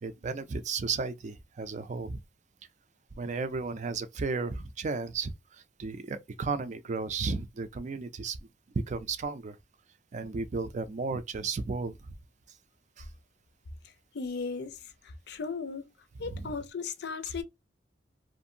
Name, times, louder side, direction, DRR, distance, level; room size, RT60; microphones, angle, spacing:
voice 1, 0.0-2.2 3.2-8.4 8.9-9.6 10.1-12.2 13.0-13.1 16.2-16.5, right 4 dB, 40° right, 0.4 m, -34 dB
voice 2, 14.1-14.8 15.3-15.9 16.2-17.4, left 4 dB, 65° left, 0.5 m, -35 dB
2.6 x 2.6 x 2.6 m
head